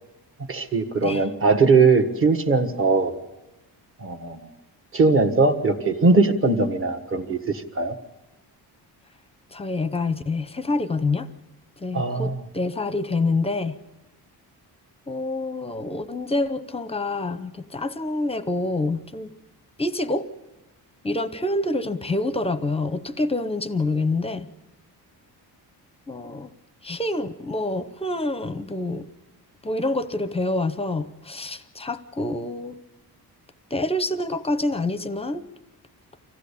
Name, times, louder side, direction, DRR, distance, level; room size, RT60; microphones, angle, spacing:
voice 1, 0.5-3.1 4.0-4.4 4.9-7.9 11.9-12.4, right 4 dB, 30° right, 1.5 m, -20 dB
voice 2, 9.5-11.3 11.8-13.8 15.1-19.3 19.8-20.3 21.0-24.5 26.1-26.5 26.8-29.1 29.6-32.8 33.7-35.4, left 2 dB, 15° left, 0.7 m, -27 dB
25.5 x 16.0 x 8.5 m
wide cardioid pair, 175°, 41 cm